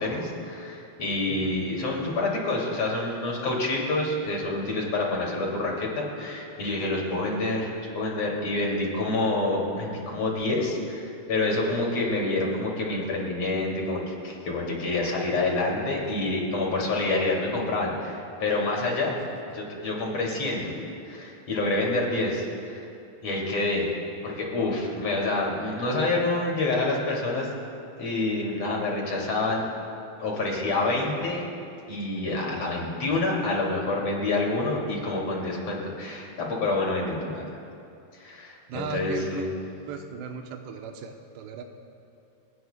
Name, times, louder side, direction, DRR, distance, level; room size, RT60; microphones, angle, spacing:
voice 1, 0.0-19.1 19.5-20.7 21.1-22.9 23.2-23.9 24.2-27.5 28.0-29.6 30.2-31.4 31.9-37.4 38.2-39.5, left 2 dB, 45° left, -2 dB, 3.0 m, -27 dB
voice 2, 38.7-39.5 39.9-41.6, right 6 dB, 90° right, 3 dB, 3.0 m, -37 dB
28.5 x 17.5 x 2.2 m, 2.6 s
omnidirectional pair, 4.7 m